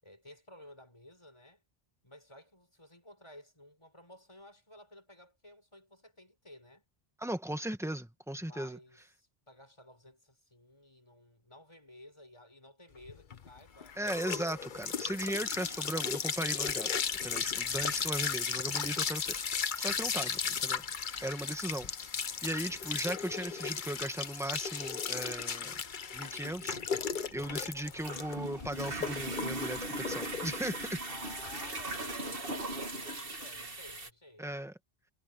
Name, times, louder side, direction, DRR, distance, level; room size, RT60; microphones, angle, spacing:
voice 1, 0.0-1.6 2.0-6.8 8.4-14.7 17.6-18.0 31.1-34.6, left 1 dB, 30° left, 5.8 m, -55 dB
voice 2, 7.2-8.8 14.0-16.9 17.2-20.8 21.2-21.9 22.4-25.7 26.1-26.8 27.3-31.0 34.4-34.7, right 1 dB, 5° right, 1.5 m, -37 dB
sound 1, 13.0-32.1, left 6 dB, 55° left, 1.0 m, -36 dB
sound 2, 27.1-34.1, right 1 dB, 65° right, 2.8 m, -39 dB
omnidirectional pair, 1.0 m